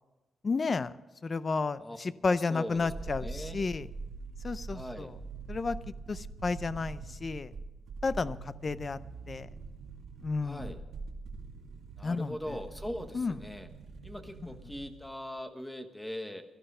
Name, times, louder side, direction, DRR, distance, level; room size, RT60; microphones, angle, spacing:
voice 1, 0.4-0.9 1.2-3.9 4.4-5.1 5.5-5.8 6.1-7.5 8.0-9.0 9.3-9.5 10.2-10.7 12.0-12.6 13.1-13.3, left 4 dB, 30° left, 15 dB, 0.5 m, -32 dB
voice 2, 2.3-3.6 4.7-5.1 10.4-10.8 12.0-13.7 14.0-16.4, equal, 5° left, 7 dB, 1.1 m, -41 dB
sound 1, 2.7-15.1 15.4-15.5, right 4 dB, 65° right, 2.2 m, -44 dB
17.0 x 12.5 x 5.5 m, 1.1 s
wide cardioid pair, 170°, 0 cm